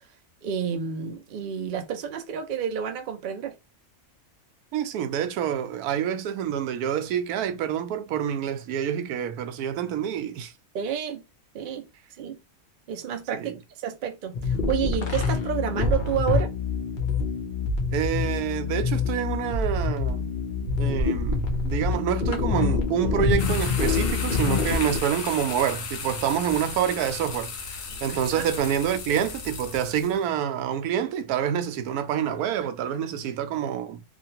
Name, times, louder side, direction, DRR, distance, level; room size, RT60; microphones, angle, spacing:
voice 1, 0.4-3.5 10.7-11.2 11.5-11.9 12.2-12.4 12.9-16.5 28.1-28.4, right 8 dB, 65° right, 0.5 m, -30 dB
voice 2, 4.7-10.5 13.3-13.6 17.9-20.3 20.8-34.0, right 9 dB, 85° right, 1.1 m, -27 dB
sound 1, 14.3-25.0, left 4 dB, 45° left, 0.7 m, -26 dB
sound 2, 23.4-30.2, left 5 dB, 65° left, 1.1 m, -35 dB
2.9 x 2.5 x 2.8 m
omnidirectional pair, 1.6 m